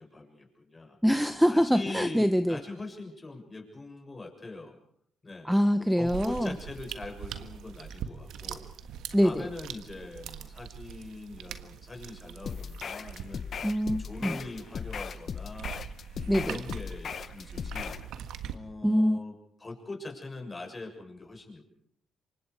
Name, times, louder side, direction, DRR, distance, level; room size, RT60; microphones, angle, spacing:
voice 1, 0.0-1.0 1.4-4.7 5.2-5.5 6.0-8.6 9.2-13.6 14.0-15.7 16.3-18.0 18.5-19.3 19.6-21.6, left 2 dB, 25° left, 2 dB, 6.9 m, -42 dB
voice 2, 1.0-2.6 5.4-6.5 9.1-9.5 13.6-14.4 16.3-16.6 18.8-19.2, equal, ahead, 10 dB, 0.9 m, -24 dB
sound 1, 6.0-18.5, right 9 dB, 80° right, 1.5 m, -43 dB
sound 2, 12.4-18.1, left 7 dB, 50° left, 0.9 m, -37 dB
28.0 x 24.5 x 4.9 m, 0.67 s
cardioid pair, 90°, 0 cm